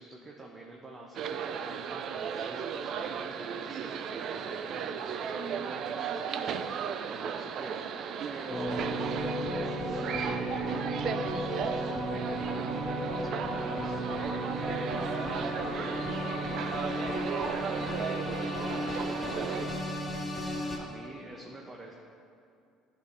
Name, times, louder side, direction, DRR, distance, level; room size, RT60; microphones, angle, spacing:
voice 1, 0.0-7.9 8.2-9.0 9.6-17.2 17.7-20.0 20.2-20.5 20.8-21.9, right 2 dB, 30° right, -1 dB, 0.9 m, -47 dB
sound 1, 1.1-19.6, right 7 dB, 60° right, 0.4 m, -36 dB
sound 2, 8.5-20.8, equal, 10° left, 1.8 m, -34 dB
11.0 x 5.2 x 3.3 m, 2.4 s
supercardioid pair, 80°, 0 cm